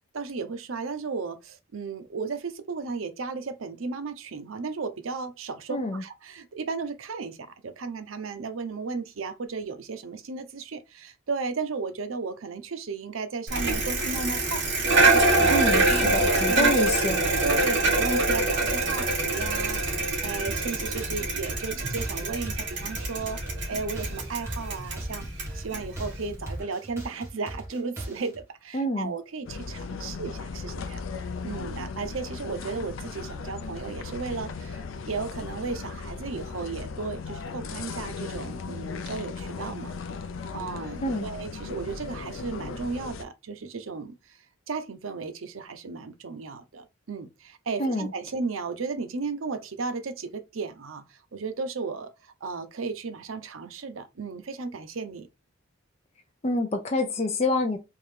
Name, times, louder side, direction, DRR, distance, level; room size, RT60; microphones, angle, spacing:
voice 1, 0.1-14.6 15.1-16.7 17.4-23.4 23.7-25.3 25.5-31.0 31.4-40.0 40.5-44.4 44.7-55.3, right 4 dB, 85° right, 0.6 m, -34 dB
voice 2, 5.7-6.0 15.5-17.2 28.7-29.1 41.0-41.3 47.8-48.1 56.4-57.8, left 2 dB, 30° left, 0.5 m, -27 dB
Bicycle, 13.5-26.6, right 2 dB, 60° right, 1.6 m, -25 dB
sound 1, 20.5-28.4, right 1 dB, 15° right, 1.3 m, -39 dB
sound 2, 29.5-43.2, left 4 dB, 80° left, 0.4 m, -37 dB
3.6 x 2.7 x 3.2 m
head